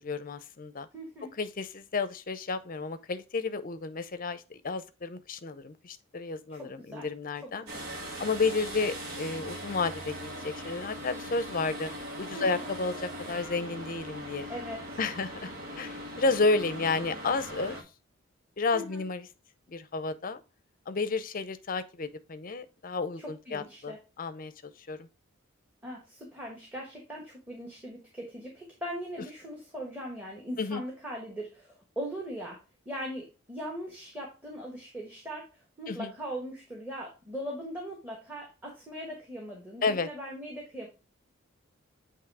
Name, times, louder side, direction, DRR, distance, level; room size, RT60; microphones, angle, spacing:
voice 1, 0.0-0.9 1.4-7.6 8.2-11.9 12.2-14.5 15.0-15.5 15.8-17.8 18.6-19.3 19.7-20.4 20.9-25.1 30.6-30.8 35.9-36.1 39.8-40.1, left 3 dB, 45° left, 0.6 m, -31 dB
voice 2, 0.9-1.4 6.5-7.1 7.4-7.9 12.4-12.5 14.5-15.0 18.7-19.0 23.2-24.0 25.8-32.6 32.8-35.5 35.8-40.9, equal, 10° right, 1.3 m, -40 dB
sound 1, 7.7-17.8, equal, 85° right, 1.7 m, -40 dB
8.1 x 3.1 x 4.7 m
head